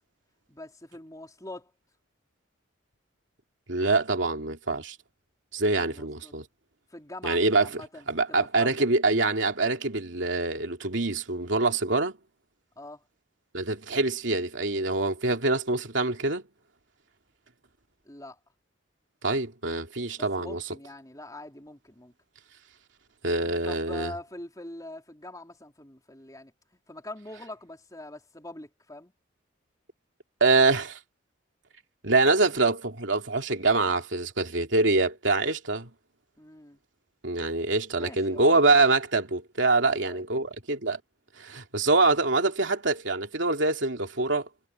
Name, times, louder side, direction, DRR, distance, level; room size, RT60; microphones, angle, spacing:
voice 1, 0.5-1.7 5.8-6.3 6.9-8.9 12.8-13.0 18.1-18.4 20.2-22.1 23.4-26.5 26.9-29.1 36.4-36.8 38.0-38.6 39.8-40.2, left 1 dB, 20° left, 3.7 m, -43 dB
voice 2, 3.7-5.0 5.5-6.4 7.2-7.7 8.1-12.1 13.5-16.4 19.2-20.6 23.2-24.1 30.4-31.0 32.0-35.9 37.2-41.0 41.4-44.5, right 3 dB, 70° right, 2.8 m, -25 dB
head